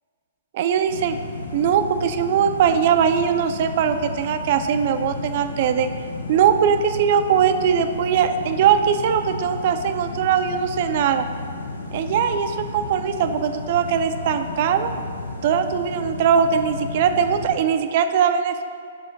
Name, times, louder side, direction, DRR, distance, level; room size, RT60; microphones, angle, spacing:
voice 1, 0.5-1.2 1.5-5.9 6.3-11.3 11.9-14.9 15.4-18.6, right 8 dB, 50° right, 8 dB, 0.5 m, -20 dB
sound 1, 0.9-17.6, left 3 dB, 80° left, 0.8 m, -33 dB
5.2 x 4.9 x 6.4 m, 2.2 s
figure-of-eight pair, 120°, 0 cm